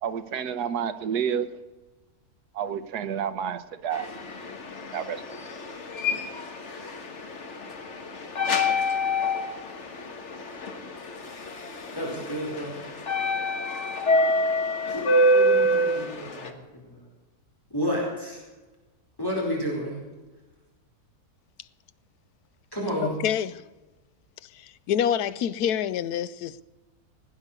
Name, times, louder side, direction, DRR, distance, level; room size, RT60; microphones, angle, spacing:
voice 1, 0.0-1.6 2.5-4.1 4.9-5.2, right 8 dB, 85° right, 1.5 m, -29 dB
sound 1, 3.9-16.5, left 1 dB, 50° left, 1.7 m, -27 dB
voice 2, 11.9-12.9 14.1-14.2 14.9-17.0 17.7-18.4 19.2-20.0 22.7-23.1, equal, 15° left, 4.6 m, -31 dB
voice 3, 23.0-23.6 24.5-26.6, left 9 dB, 85° left, 1.2 m, -27 dB
17.5 x 9.7 x 6.8 m
omnidirectional pair, 1.6 m